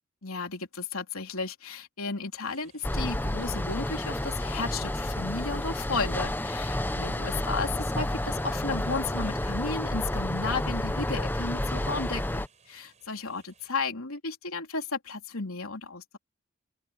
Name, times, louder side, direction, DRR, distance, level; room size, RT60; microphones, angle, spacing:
voice 1, 0.2-16.2, left 4 dB, 85° left, 3.4 m, -34 dB
sound 1, 2.4-13.8, right 6 dB, 35° right, 7.1 m, -60 dB
sound 2, 2.8-12.5, left 1 dB, 10° left, 0.7 m, -30 dB
open air
head